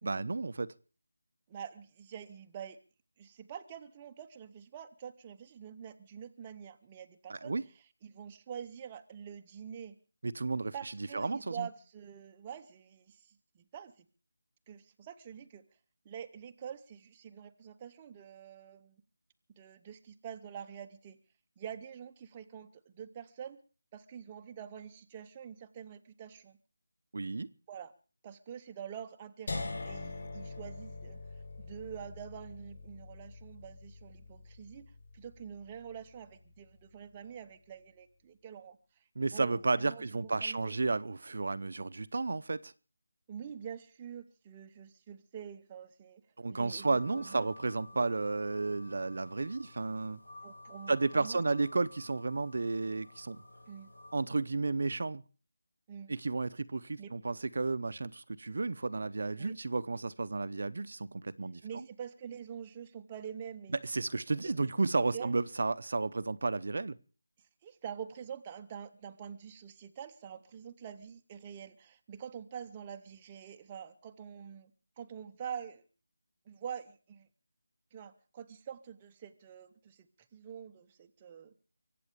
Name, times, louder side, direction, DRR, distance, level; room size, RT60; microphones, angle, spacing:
voice 1, 0.0-0.7 7.3-7.6 10.2-11.7 27.1-27.5 39.2-42.7 46.4-50.2 50.9-53.4 54.1-55.2 56.1-61.8 63.7-66.9, right 3 dB, 50° right, 0.7 m, -32 dB
voice 2, 1.5-2.8 3.2-7.6 8.0-10.0 10.7-14.1 14.7-15.6 16.0-19.0 19.6-21.2 21.6-23.6 23.9-26.6 27.7-27.9 28.2-31.2 31.6-38.8 39.3-40.7 43.3-46.2 46.5-47.5 48.0-48.1 50.4-51.4 53.7-53.9 55.9-56.1 57.0-57.1 59.4-59.6 61.6-63.8 64.4-64.5 65.1-65.3 67.6-74.7 75.0-75.8 76.5-77.3 77.9-80.1 80.3-81.5, right 8 dB, 15° right, 0.7 m, -46 dB
sound 1, 29.5-35.4, left 3 dB, 45° left, 4.4 m, -43 dB
sound 2, 46.8-54.1, left 2 dB, 80° left, 6.7 m, -53 dB
23.5 x 8.6 x 6.8 m
figure-of-eight pair, 175°, 0 cm